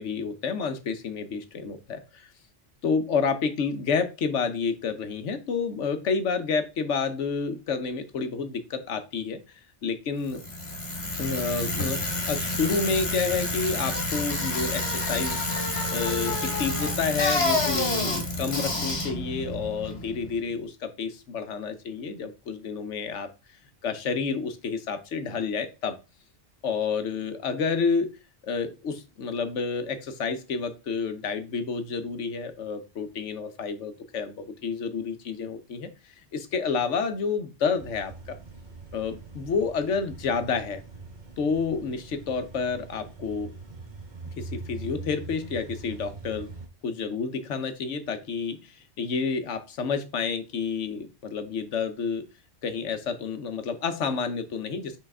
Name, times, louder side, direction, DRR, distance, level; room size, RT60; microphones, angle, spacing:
voice 1, 0.0-2.3 2.8-10.4 11.2-12.0 12.3-15.5 15.9-23.3 23.8-26.0 26.6-28.1 28.4-38.4 38.9-40.8 41.4-43.5 44.4-46.5 46.8-52.2 52.6-55.0, left 5 dB, 90° left, 9 dB, 1.2 m, -29 dB
Bicycle, 10.3-20.4, left 2 dB, 60° left, 1.9 m, -29 dB
sound 1, 37.8-46.7, right 3 dB, 40° right, 1.5 m, -42 dB
5.6 x 5.0 x 3.6 m, 0.29 s
omnidirectional pair, 1.2 m